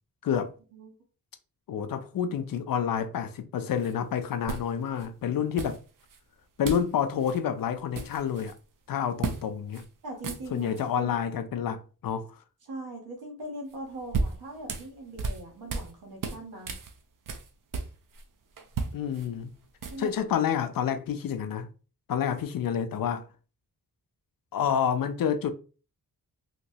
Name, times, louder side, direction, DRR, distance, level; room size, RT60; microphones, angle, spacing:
voice 1, 0.2-0.5 1.7-5.8 6.6-8.5 8.9-9.8 10.5-12.3 18.9-19.5 20.0-21.7 22.1-23.3 24.5-25.5, left 8 dB, 65° left, 0.5 m, -28 dB
sound 1, 3.8-3.9 4.5-5.1 5.6-6.2 6.6-6.9 7.2-7.4 7.7-8.6 9.2-9.4 9.7-9.9 10.1-10.8 13.7-15.9 16.2-18.2 18.6-20.2, right 4 dB, 60° right, 0.6 m, -35 dB
voice 2, 10.0-11.3 12.6-16.7 19.8-20.3, right 1 dB, 80° right, 1.0 m, -41 dB
2.9 x 2.9 x 2.7 m
cardioid pair, 80°, 36 cm